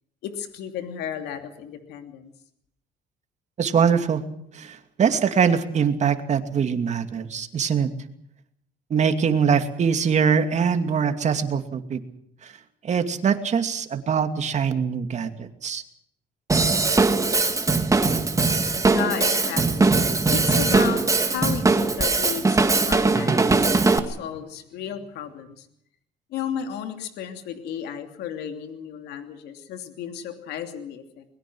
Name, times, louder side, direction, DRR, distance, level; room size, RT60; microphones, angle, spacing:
voice 1, 0.2-2.3 18.9-19.9 20.3-25.7 26.3-31.2, left 9 dB, 80° left, 6 dB, 2.9 m, -33 dB
voice 2, 3.6-4.2 4.5-7.9 8.9-12.0 12.4-12.5 12.8-15.8, right 6 dB, 45° right, 7 dB, 2.5 m, -23 dB
Drum kit / Drum, 16.5-24.0, right 3 dB, 20° right, 2.1 m, -20 dB
22.5 x 21.5 x 6.2 m, 0.71 s
cardioid pair, 110°, 17 cm